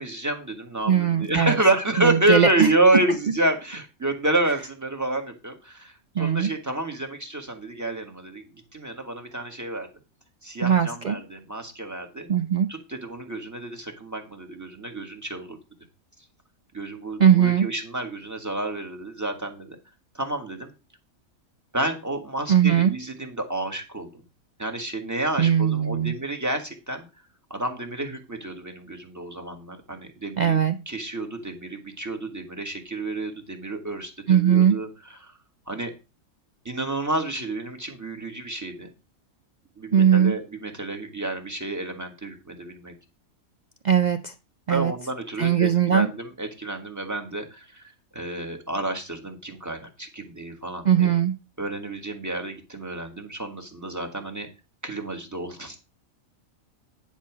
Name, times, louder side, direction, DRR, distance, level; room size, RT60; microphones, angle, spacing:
voice 1, 0.0-8.4 8.7-9.9 10.4-12.3 12.7-15.6 16.7-19.7 20.1-20.7 21.7-24.1 24.6-27.0 27.5-35.3 35.7-35.9 36.6-38.9 39.8-42.9 44.7-51.1 51.6-54.5 54.8-55.8, right 2 dB, 10° right, 3 dB, 1.6 m, -29 dB
voice 2, 0.9-1.6 2.0-2.7 6.2-6.5 10.6-11.2 12.3-12.7 17.2-17.7 22.5-22.9 25.4-26.1 30.4-30.8 34.3-34.8 39.9-40.3 43.8-44.3 44.7-44.9 45.4-46.1 50.8-51.3, right 8 dB, 80° right, 9 dB, 0.4 m, -19 dB
10.5 x 4.4 x 6.0 m, 0.29 s
omnidirectional pair, 1.5 m